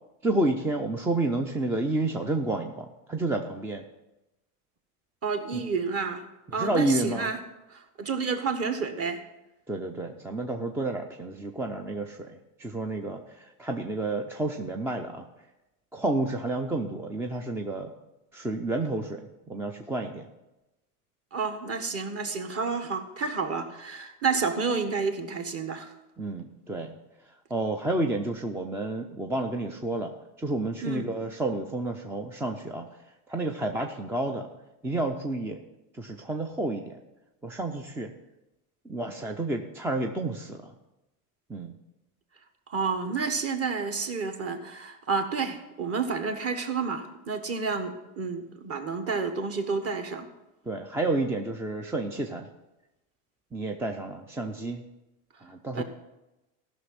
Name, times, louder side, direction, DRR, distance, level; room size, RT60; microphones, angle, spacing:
voice 1, 0.2-3.8 5.5-5.6 6.6-7.3 9.7-15.3 15.9-17.9 18.3-20.3 26.2-27.0 27.5-32.9 33.3-34.5 34.8-35.6 35.9-37.0 37.4-38.1 38.8-40.7 41.5-41.7 50.7-52.5 53.5-54.8 55.4-55.8, right 2 dB, 5° right, 4 dB, 0.4 m, -30 dB
voice 2, 5.2-6.2 6.5-7.4 7.7-9.2 21.3-25.9 30.8-31.1 42.7-50.3 55.7-55.8, right 5 dB, 30° right, 6 dB, 1.4 m, -30 dB
14.5 x 6.1 x 5.7 m, 0.98 s
supercardioid pair, 120°, 44 cm